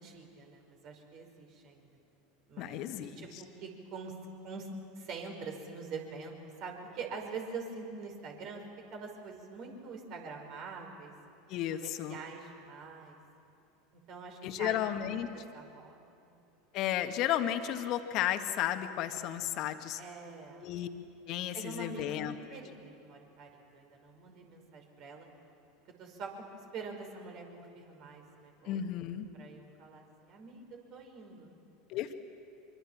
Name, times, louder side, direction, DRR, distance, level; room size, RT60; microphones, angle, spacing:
voice 1, 0.0-1.9 2.5-2.8 3.1-4.2 4.4-4.7 5.0-8.6 8.9-11.1 11.7-13.2 13.9-14.9 15.5-16.4 20.0-20.7 21.5-25.3 26.0-26.3 26.7-28.8 29.3-31.6, right 4 dB, 50° right, 2 dB, 5.2 m, -45 dB
voice 2, 2.6-3.4 11.5-12.2 14.4-15.3 16.7-20.0 20.6-20.9 21.3-22.4 28.7-29.3 31.9-32.1, left 11 dB, 50° left, 7 dB, 1.8 m, -33 dB
24.5 x 24.5 x 7.4 m, 2.7 s
hypercardioid pair, 80°, 0 cm